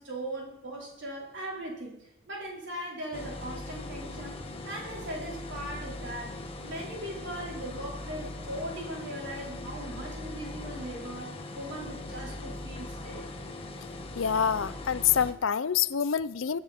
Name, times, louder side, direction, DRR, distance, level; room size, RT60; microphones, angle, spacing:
voice 1, 0.0-13.3, right 1 dB, 55° right, 4.5 m, -39 dB
sound 1, 3.1-15.3, left 2 dB, 30° left, 1.4 m, -40 dB
voice 2, 14.2-16.6, left 8 dB, 65° left, 0.5 m, -26 dB
22.0 x 9.4 x 4.4 m
head